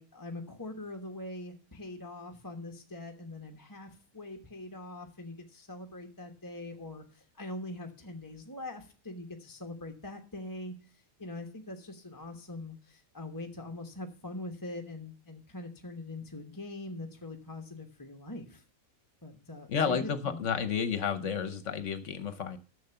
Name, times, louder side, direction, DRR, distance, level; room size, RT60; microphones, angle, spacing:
voice 1, 0.0-18.6 19.2-20.4, left 2 dB, 15° left, 3 dB, 1.1 m, -43 dB
voice 2, 19.7-22.6, left 7 dB, 65° left, 11 dB, 1.1 m, -31 dB
10.5 x 6.8 x 6.8 m, 0.36 s
omnidirectional pair, 1.4 m